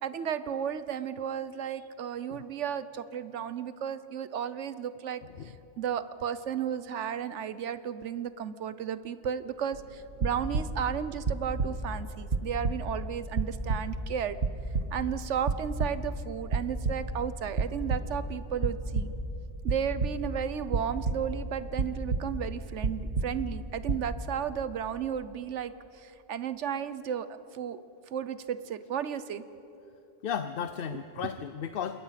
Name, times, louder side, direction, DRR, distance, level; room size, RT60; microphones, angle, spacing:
voice 1, 0.0-5.2 5.8-14.4 14.9-19.1 19.6-27.8 28.1-29.4 31.2-31.3, right 8 dB, 85° right, 14 dB, 1.2 m, -34 dB
sound 1, 9.7-10.9 11.2-12.0 12.3-14.0 14.4-15.2 15.5-16.2 16.5-17.2 17.5-18.2 18.6-19.4 19.6-20.3 20.7-21.5 21.8-22.5 22.8-23.6 23.8-24.1, right 3 dB, 70° right, 1.5 m, -30 dB
voice 2, 30.2-32.0, left 7 dB, 60° left, 10 dB, 0.8 m, -34 dB
27.5 x 21.0 x 5.8 m, 2.9 s
omnidirectional pair, 1.2 m